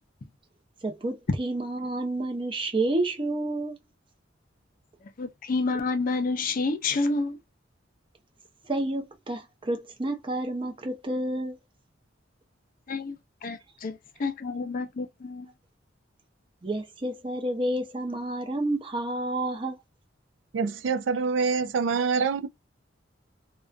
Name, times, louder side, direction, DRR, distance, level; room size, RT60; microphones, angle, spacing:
voice 1, 0.8-3.8 8.7-11.6 16.6-19.8, right 1 dB, 25° right, 0.7 m, -30 dB
voice 2, 5.2-7.4 12.9-13.2 13.4-15.5, left 3 dB, 45° left, 0.5 m, -29 dB
voice 3, 20.5-22.5, right 5 dB, 70° right, 0.4 m, -25 dB
2.4 x 2.2 x 2.4 m
head